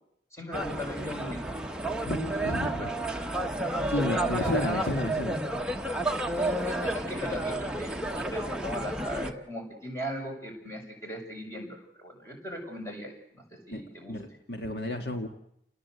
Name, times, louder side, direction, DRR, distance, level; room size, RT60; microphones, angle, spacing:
voice 1, 0.3-1.4 2.8-2.9 3.8-4.8 6.3-14.1, equal, 15° left, 1 dB, 6.5 m, -38 dB
sound 1, 0.5-9.3, right 1 dB, 5° right, 1.1 m, -31 dB
voice 2, 2.0-2.9 3.9-5.4 13.7-13.8 14.1-15.3, left 1 dB, 65° left, 5 dB, 1.9 m, -32 dB
29.5 x 19.0 x 8.1 m, 0.78 s
head